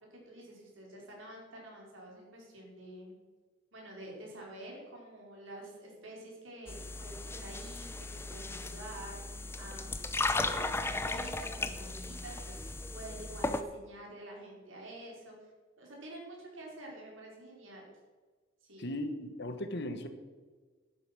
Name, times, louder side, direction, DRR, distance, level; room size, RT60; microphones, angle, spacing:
voice 1, 0.1-3.2 3.7-9.2 9.6-10.0 10.3-15.5 15.8-17.9 18.6-18.9, right 1 dB, 70° right, -2 dB, 4.7 m, -48 dB
sound 1, 6.7-13.6, left 2 dB, 10° left, 0.6 m, -36 dB
voice 2, 18.8-20.1, left 1 dB, 55° left, 8 dB, 1.3 m, -37 dB
11.0 x 9.9 x 6.1 m, 1.4 s
head